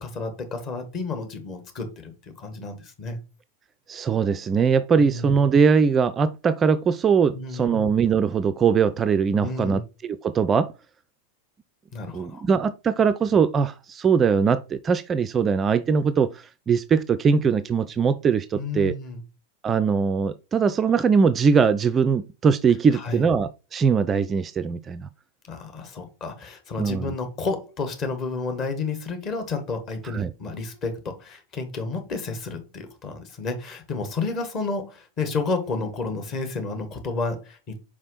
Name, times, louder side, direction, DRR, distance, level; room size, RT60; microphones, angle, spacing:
voice 1, 0.0-3.2 5.0-5.3 7.3-7.8 9.4-9.8 11.9-12.4 18.5-19.2 22.9-23.2 25.5-37.8, left 3 dB, 35° left, 1.7 m, -31 dB
voice 2, 3.9-10.7 12.1-18.9 19.6-25.1 26.8-27.1 30.1-30.3, right 6 dB, 20° right, 0.3 m, -21 dB
5.3 x 4.9 x 3.9 m
figure-of-eight pair, 90°, 0 cm